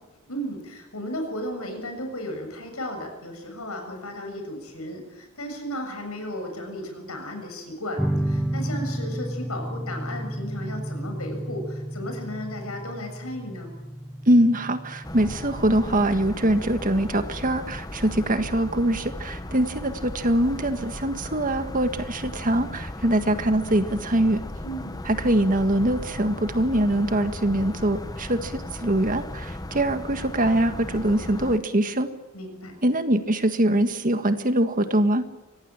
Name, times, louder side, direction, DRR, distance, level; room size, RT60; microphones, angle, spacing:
voice 1, 0.3-13.7 24.6-25.1 32.3-32.7, equal, 90° left, 5 dB, 7.2 m, -35 dB
sound 1, 8.0-15.6, right 1 dB, ahead, 0.9 m, -31 dB
voice 2, 14.3-24.4 25.1-32.1 32.8-35.2, right 1 dB, 40° right, 8 dB, 1.7 m, -23 dB
sound 2, 15.0-31.6, left 1 dB, 20° left, 0.9 m, -36 dB
24.5 x 18.5 x 8.9 m, 1.0 s
head